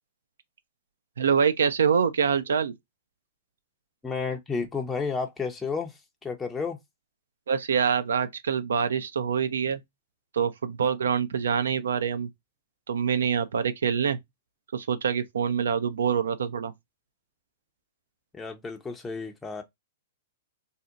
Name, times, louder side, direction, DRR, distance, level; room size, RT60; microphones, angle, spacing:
voice 1, 1.2-2.7 7.5-9.8 10.3-12.3 12.9-14.2 14.7-16.7, right 7 dB, 80° right, 0.4 m, -25 dB
voice 2, 4.0-6.8 18.3-19.6, left 4 dB, 10° left, 0.5 m, -32 dB
2.7 x 2.1 x 3.7 m
hypercardioid pair, 115°, 0 cm